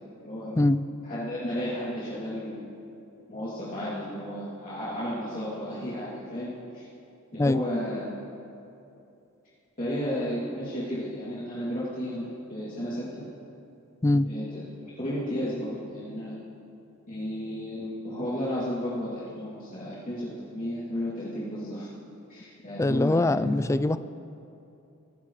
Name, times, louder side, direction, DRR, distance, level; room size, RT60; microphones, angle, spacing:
voice 1, 0.2-0.6 1.0-2.6 3.3-6.9 7.3-8.0 9.8-13.1 14.2-16.4 17.1-21.9 22.3-23.4, equal, 40° left, -10 dB, 2.8 m, -33 dB
voice 2, 22.8-24.0, left 2 dB, 15° left, 13 dB, 0.3 m, -22 dB
23.5 x 14.5 x 3.2 m, 2.7 s
head